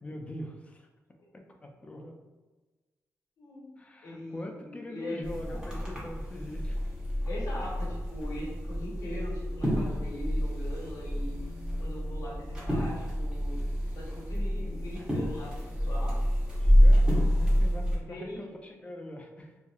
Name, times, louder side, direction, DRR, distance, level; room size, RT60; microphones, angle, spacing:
voice 1, 0.0-0.9 1.3-2.1 3.8-6.8 16.6-19.6, left 1 dB, 20° left, 2 dB, 0.4 m, -43 dB
voice 2, 3.4-3.7 4.0-5.7 7.2-11.4 11.8-13.6 13.9-16.2 18.1-18.4, left 1 dB, 85° left, -5 dB, 0.9 m, -41 dB
sound 1, 5.2-18.0, equal, 15° right, 0.8 m, -28 dB
2.7 x 2.1 x 2.3 m, 1.2 s
cardioid pair, 100°, 6 cm